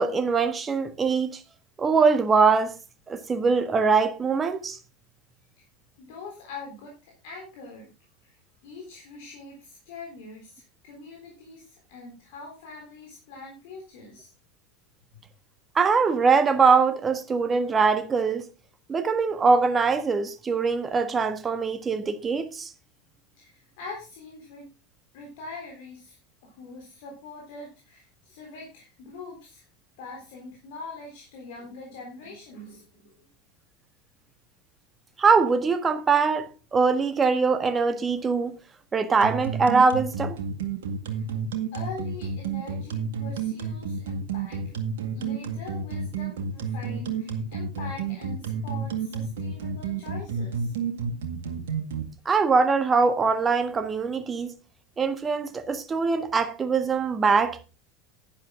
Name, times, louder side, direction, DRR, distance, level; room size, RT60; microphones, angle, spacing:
voice 1, 0.0-1.4 1.8-2.8 3.1-4.8 15.7-18.5 18.9-22.7 35.2-38.5 38.9-40.3 52.2-54.5 55.0-57.6, right 5 dB, 20° right, 1.6 m, -22 dB
voice 2, 6.0-7.9 8.2-8.4 8.6-14.3 15.1-15.2 23.4-24.7 25.1-26.2 26.4-29.6 30.0-33.1 41.1-41.3 41.7-44.6 45.1-50.7, left 3 dB, 55° left, 3.7 m, -43 dB
sound 1, 39.2-52.0, right 6 dB, 65° right, 2.0 m, -30 dB
11.0 x 10.5 x 3.8 m
figure-of-eight pair, 80°, 0 cm